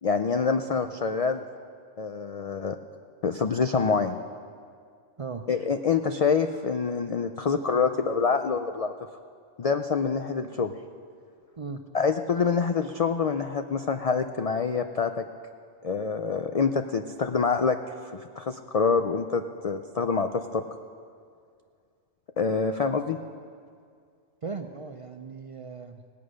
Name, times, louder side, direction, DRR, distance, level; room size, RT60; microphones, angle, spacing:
voice 1, 0.0-1.4 2.0-2.8 3.2-4.2 5.5-8.9 9.6-10.7 11.9-15.2 15.8-17.8 18.1-20.6 22.4-23.2, left 5 dB, 65° left, 7 dB, 0.3 m, -26 dB
voice 2, 24.4-26.0, right 5 dB, 45° right, 5 dB, 0.4 m, -37 dB
18.0 x 8.4 x 6.3 m, 2.2 s
omnidirectional pair, 1.2 m